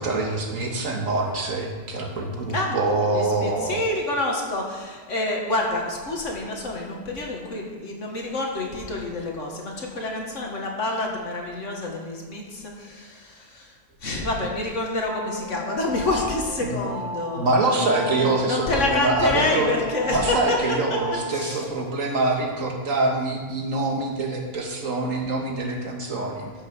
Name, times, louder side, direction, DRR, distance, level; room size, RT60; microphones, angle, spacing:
voice 1, 0.0-3.9 16.6-16.8 17.4-19.7 20.1-26.5, right 2 dB, 85° right, 1 dB, 2.0 m, -25 dB
voice 2, 3.1-13.7 14.0-20.6 20.9-21.0 21.3-21.7, left 2 dB, 70° left, 0 dB, 2.2 m, -28 dB
sound 1, 15.0-21.7, equal, 50° left, 2.8 m, -35 dB
13.0 x 6.0 x 6.1 m, 1.5 s
omnidirectional pair, 1.3 m